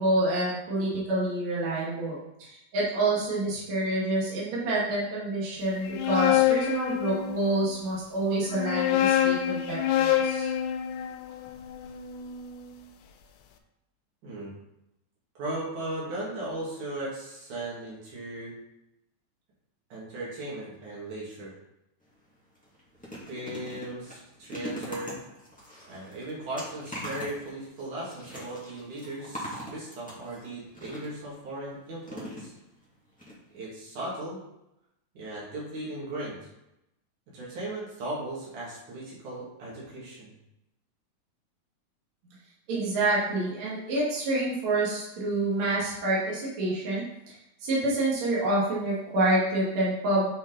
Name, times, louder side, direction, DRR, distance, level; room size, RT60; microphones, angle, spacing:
voice 1, 0.0-10.5 42.7-47.0 47.6-50.3, right 2 dB, 65° right, -7 dB, 3.4 m, -27 dB
sound 1, 5.8-7.7 8.4-12.6, left 11 dB, 85° left, 2.1 m, -26 dB
voice 2, 15.4-18.5 19.9-21.5 23.3-25.2 25.9-32.5 33.5-34.4 35.1-36.5 37.3-40.3, right 1 dB, 90° right, -7 dB, 4.2 m, -37 dB
sound 2, 22.0-22.2 22.6-31.3 32.0-32.8 33.2-33.3 33.6-33.7, equal, 5° left, 2.0 m, -41 dB
9.4 x 5.3 x 4.2 m, 0.87 s
omnidirectional pair, 3.4 m